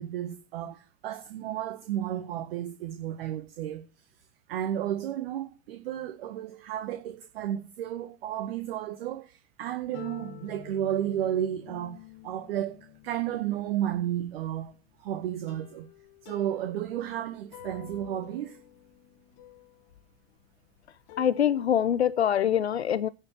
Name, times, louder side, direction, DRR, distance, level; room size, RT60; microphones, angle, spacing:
voice 1, 0.0-3.8 4.5-15.9 16.2-18.6, right 11 dB, 65° right, 1.5 m, -33 dB
sound 1, 9.9-21.9, left 15 dB, 55° left, 2.4 m, -50 dB
voice 2, 21.2-23.1, left 9 dB, 85° left, 0.7 m, -24 dB
10.5 x 7.3 x 7.3 m
figure-of-eight pair, 80°, 32 cm